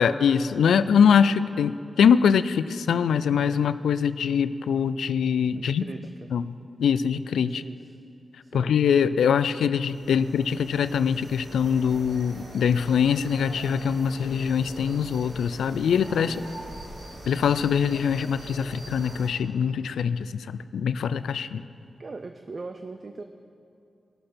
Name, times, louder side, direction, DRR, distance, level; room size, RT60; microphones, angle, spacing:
voice 1, 0.0-5.8 6.3-6.5 6.8-7.6 8.5-16.4 17.3-20.5 20.7-21.6, left 7 dB, 85° left, 14 dB, 0.3 m, -23 dB
voice 2, 5.5-6.3 7.4-7.9 8.4-8.7 16.2-16.7 22.0-23.2, right 3 dB, 50° right, 7 dB, 0.5 m, -40 dB
sound 1, 9.8-19.3, right 1 dB, 70° right, 2.0 m, -43 dB
19.0 x 6.5 x 4.3 m, 2.7 s
cardioid pair, 45°, 0 cm